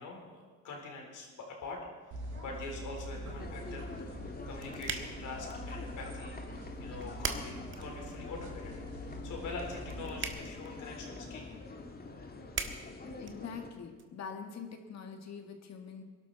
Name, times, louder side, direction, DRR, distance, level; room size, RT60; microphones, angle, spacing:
voice 1, 0.0-1.8 2.4-3.9 4.4-6.4 6.8-8.8 9.2-11.5, left 3 dB, 80° left, 0 dB, 4.0 m, -44 dB
sound 1, 2.1-10.3, right 1 dB, 85° right, 6.1 m, -44 dB
sound 2, 3.4-13.7, left 3 dB, 30° left, 1.7 m, -46 dB
sound 3, 4.1-14.0, right 5 dB, 40° right, 1.5 m, -44 dB
voice 2, 13.0-16.0, left 6 dB, 60° left, 4 dB, 2.0 m, -44 dB
21.0 x 12.0 x 4.2 m, 1.4 s
cardioid pair, 90°, 30 cm